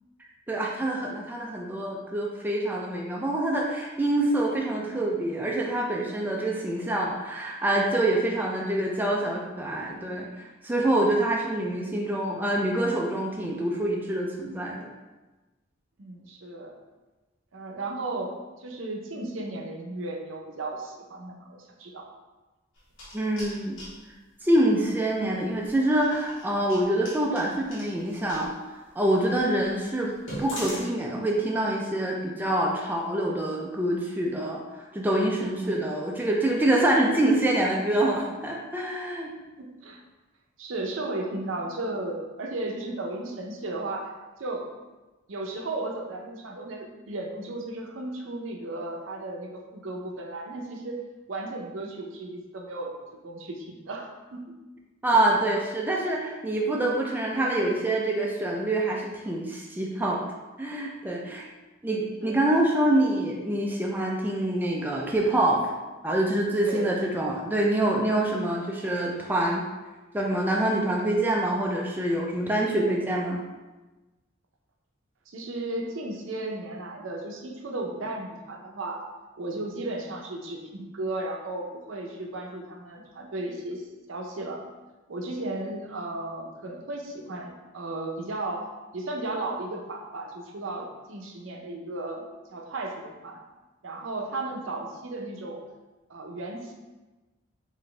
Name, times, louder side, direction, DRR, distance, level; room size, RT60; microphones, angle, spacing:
voice 1, 0.5-14.9 23.1-23.8 24.4-30.1 30.4-39.3 55.0-60.2 60.6-61.5 61.8-65.7 66.0-69.6 70.1-73.4, right 1 dB, 10° right, -1 dB, 0.3 m, -26 dB
voice 2, 16.0-16.8 17.5-22.0 35.5-35.8 39.6-40.0 40.6-44.1 44.4-44.7 45.3-51.0 51.3-54.5 62.2-62.4 66.6-67.0 75.3-79.0 79.4-84.6 85.1-88.7 88.9-93.4 93.8-95.6 96.1-96.7, right 2 dB, 80° right, 2 dB, 0.6 m, -35 dB
sound 1, 22.8-24.0 25.5-28.5 29.1-29.2 29.6-29.7 30.1-30.8, equal, 80° left, 1.2 m, -40 dB
4.1 x 2.6 x 3.2 m, 1.2 s
head